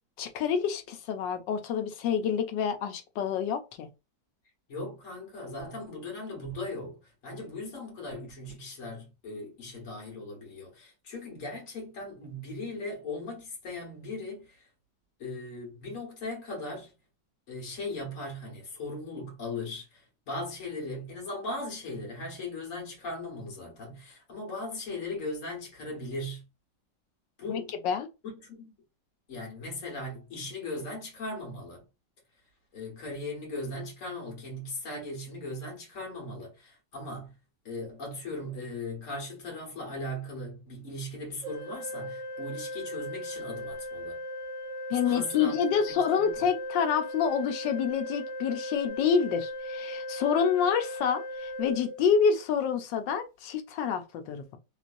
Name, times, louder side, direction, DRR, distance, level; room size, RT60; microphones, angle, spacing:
voice 1, 0.2-3.9 27.5-28.1 44.9-54.6, left 7 dB, 85° left, 1.3 m, -28 dB
voice 2, 4.7-14.7 15.2-16.9 17.5-26.4 27.4-27.7 28.4-28.7 29.3-31.8 32.7-37.3 37.6-44.2 45.0-46.3, left 2 dB, 50° left, 1.7 m, -38 dB
Organ, 41.4-52.5, left 1 dB, 65° right, 0.8 m, -38 dB
3.1 x 3.1 x 2.5 m
omnidirectional pair, 1.9 m